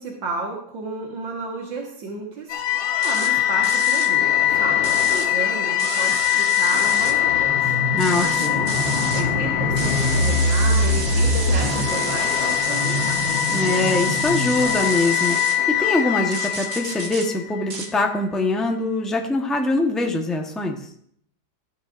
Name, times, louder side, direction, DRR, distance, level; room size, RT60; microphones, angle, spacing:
voice 1, 0.0-8.7 9.1-13.2, right 3 dB, 80° right, -1 dB, 2.2 m, -32 dB
sound 1, 2.5-17.6, left 7 dB, 85° left, 1.9 m, -21 dB
sound 2, 3.0-3.3 3.6-4.1 4.8-5.3 5.8-7.1 8.0-9.2 9.7-15.6 16.3-17.3 17.7-17.9, right 3 dB, 45° right, 1.5 m, -31 dB
voice 2, 7.9-8.5 13.5-20.8, left 2 dB, ahead, 2 dB, 0.7 m, -23 dB
14.0 x 9.9 x 2.6 m, 0.66 s
omnidirectional pair, 2.0 m